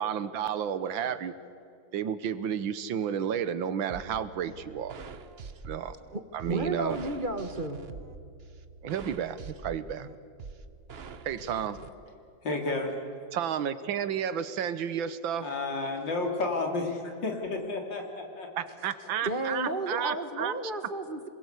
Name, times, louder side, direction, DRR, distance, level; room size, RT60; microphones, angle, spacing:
voice 1, 0.0-1.3 1.9-5.0 5.7-5.9 6.3-7.0 8.8-10.1 11.2-11.8 13.3-15.5 18.6-20.5, right 8 dB, 85° right, 13 dB, 1.8 m, -32 dB
sound 1, 3.9-11.9, right 5 dB, 45° right, 0.9 m, -45 dB
voice 2, 6.5-7.8 10.0-10.1 19.2-21.3, right 2 dB, 30° right, 8 dB, 1.4 m, -32 dB
voice 3, 12.4-13.0 15.4-18.5, left 3 dB, 70° left, 2 dB, 3.9 m, -31 dB
27.5 x 21.5 x 8.3 m, 2.5 s
omnidirectional pair, 2.1 m